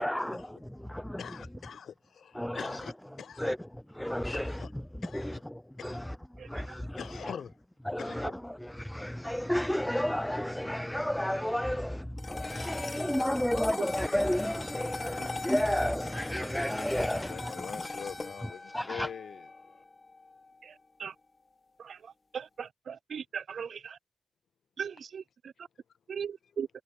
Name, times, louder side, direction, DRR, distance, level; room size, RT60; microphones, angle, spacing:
voice 1, 0.0-0.4 2.4-2.9 3.4-3.6 4.0-4.6 5.1-5.4 5.8-6.0 6.5-6.6 7.2-7.3 7.9-8.3 8.9-12.0 12.4-17.5 18.7-19.1, equal, 5° left, 0.5 m, -31 dB
voice 2, 1.2-2.9 3.2-3.5 4.3-4.7 5.0-5.4 5.8-6.1 6.6-7.5 8.0-8.2 12.5-13.3 16.9-19.4, left 7 dB, 85° left, 0.6 m, -44 dB
sound 1, 12.2-20.7, left 3 dB, 30° left, 1.3 m, -40 dB
sound 2, 14.5-19.8, left 5 dB, 50° left, 7.2 m, -66 dB
voice 3, 22.3-24.0 24.8-25.2 26.1-26.7, right 7 dB, 75° right, 0.3 m, -38 dB
wide cardioid pair, 125°, 0 cm